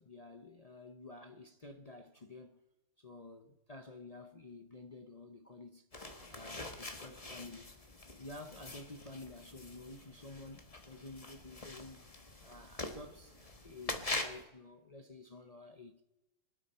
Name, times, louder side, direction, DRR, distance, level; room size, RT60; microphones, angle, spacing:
voice 1, 0.0-2.6 3.0-5.9 6.3-7.7 8.2-12.0 12.4-13.4 13.6-16.0, left 2 dB, 45° left, 0.4 m, -51 dB
sound 1, 5.9-14.4, left 2 dB, 20° left, 1.3 m, -44 dB
24.0 x 12.0 x 4.3 m
omnidirectional pair, 2.0 m